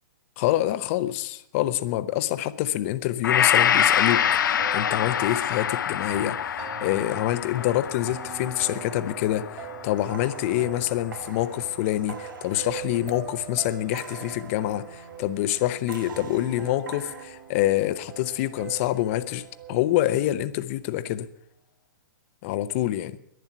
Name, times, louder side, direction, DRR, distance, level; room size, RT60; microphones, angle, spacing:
voice 1, 0.4-21.3 22.4-23.2, left 14 dB, 40° left, 0.8 m, -26 dB
Gong, 3.2-11.6 12.0-12.1, left 9 dB, 75° left, 0.7 m, -26 dB
sound 1, 3.9-20.3, right 9 dB, 35° right, 2.5 m, -43 dB
sound 2, 9.8-13.5 13.9-15.4 15.9-17.2, right 5 dB, 75° right, 1.7 m, -45 dB
11.0 x 10.5 x 9.4 m
hypercardioid pair, 140°, 11 cm